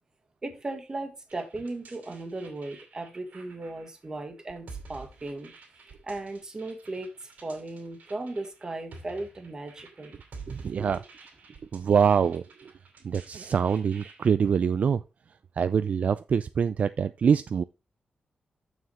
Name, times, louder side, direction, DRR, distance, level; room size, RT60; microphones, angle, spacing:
voice 1, 0.4-5.5 6.0-10.2 10.7-10.9, right 2 dB, 25° right, 1.5 m, -37 dB
sound 1, 1.3-14.3, right 4 dB, 65° right, 2.7 m, -50 dB
voice 2, 10.5-11.0 11.7-12.4 13.0-15.0 15.6-17.6, right 7 dB, 50° right, 0.3 m, -24 dB
7.1 x 6.3 x 4.2 m
wide cardioid pair, 170°, 3 cm